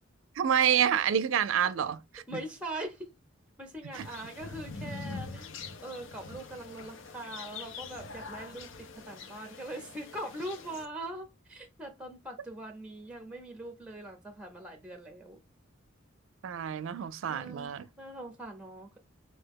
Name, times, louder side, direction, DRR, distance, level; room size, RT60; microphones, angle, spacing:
voice 1, 0.4-2.0 2.3-2.4 3.9-4.1 16.4-17.9, right 9 dB, 85° right, 0.4 m, -28 dB
voice 2, 2.3-3.1 3.6-8.7 9.0-15.4 17.3-19.0, right 1 dB, 5° right, 0.6 m, -42 dB
sound 1, 3.9-10.9, left 4 dB, 70° left, 0.6 m, -44 dB
4.3 x 2.2 x 3.4 m
head